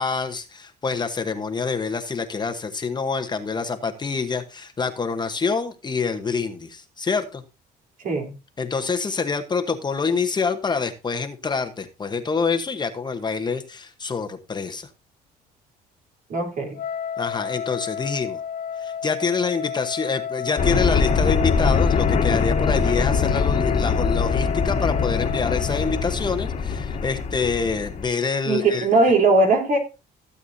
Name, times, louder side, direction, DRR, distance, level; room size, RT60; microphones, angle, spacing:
voice 1, 0.0-7.4 8.6-14.9 17.2-18.4 18.8-28.9, left 5 dB, 25° left, 1.1 m, -26 dB
voice 2, 16.3-16.8 28.5-29.8, right 3 dB, 55° right, 3.5 m, -19 dB
Wind instrument woodwind instrument, 16.7-26.1, left 7 dB, 60° left, 0.9 m, -31 dB
sound 1, 20.6-28.1, left 5 dB, 40° left, 1.6 m, -23 dB
15.5 x 8.1 x 2.7 m
cardioid pair, 110°, 17 cm